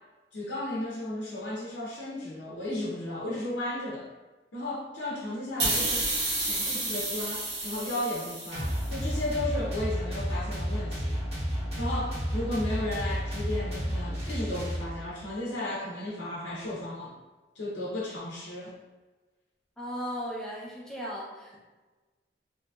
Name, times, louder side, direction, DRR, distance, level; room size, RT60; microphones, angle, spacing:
voice 1, 0.3-4.1 4.5-11.2 11.8-17.2 17.5-18.7, left 1 dB, 85° left, -6 dB, 0.6 m, -34 dB
sound 1, 5.6-9.0, right 2 dB, 70° right, 1.0 m, -30 dB
sound 2, 8.5-15.2, equal, 35° right, 0.8 m, -31 dB
voice 2, 19.8-21.6, equal, 5° left, -6 dB, 0.5 m, -36 dB
2.7 x 2.5 x 2.3 m, 1.2 s
head